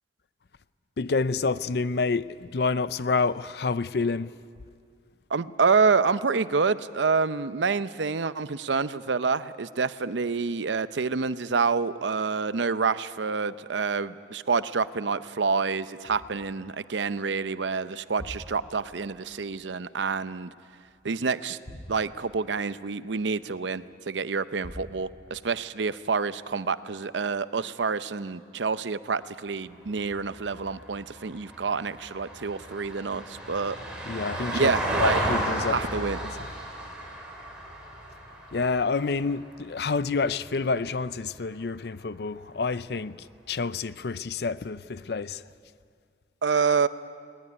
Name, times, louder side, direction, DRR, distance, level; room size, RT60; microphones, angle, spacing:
voice 1, 1.0-4.4 34.0-34.7 35.0-36.5 38.5-45.5, left 4 dB, 60° left, 0.5 m, -28 dB
voice 2, 5.3-20.5 21.0-21.6 21.9-33.8 34.5-35.2 35.7-36.2 46.4-46.9, right 5 dB, 90° right, 0.7 m, -27 dB
sound 1, 16.0-21.0 21.6-24.0 24.6-26.6 27.1-27.2, equal, 85° left, 3.7 m, -48 dB
Vehicle, 29.6-40.1 42.4-42.5, right 1 dB, 5° right, 3.8 m, -33 dB
20.5 x 19.0 x 9.9 m
head